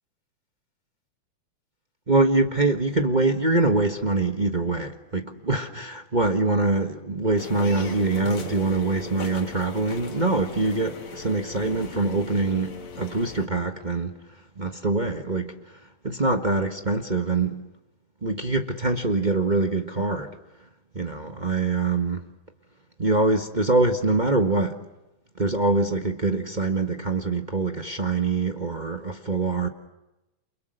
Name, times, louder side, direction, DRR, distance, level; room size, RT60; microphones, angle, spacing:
voice 1, 2.1-14.2 14.6-15.6 16.0-17.6 18.2-20.3 20.9-22.2 23.0-24.8 25.4-29.7, right 3 dB, 45° right, 0.5 m, -24 dB
sound 1, 7.4-13.5, left 3 dB, 60° left, 3.9 m, -38 dB
30.0 x 28.5 x 6.6 m
omnidirectional pair, 3.5 m